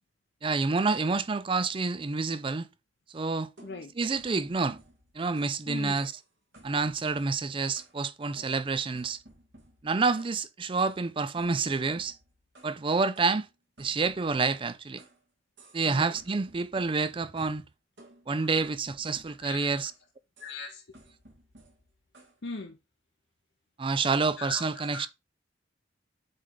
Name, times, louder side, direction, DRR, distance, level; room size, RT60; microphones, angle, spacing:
voice 1, 0.4-2.7 3.1-3.5 4.0-4.8 5.1-6.1 6.6-9.2 9.8-12.1 12.6-13.5 13.8-15.0 15.7-17.7 18.3-19.9 23.8-25.1, right 4 dB, 30° right, 0.4 m, -28 dB
voice 2, 3.6-3.9 5.7-6.0 15.9-16.2 18.3-18.7 19.4-19.7 20.4-21.0 22.4-22.8 24.4-25.1, left 3 dB, 65° left, 0.8 m, -40 dB
sound 1, 3.6-5.6 6.0-6.3 6.5-8.0 8.4-10.4 10.8-11.0 11.4-12.8 13.2-15.2 15.6-15.9 16.2-17.6 18.0-20.0 20.4-20.6 20.9-22.4, right 1 dB, 70° right, 2.6 m, -56 dB
7.6 x 3.3 x 3.8 m
head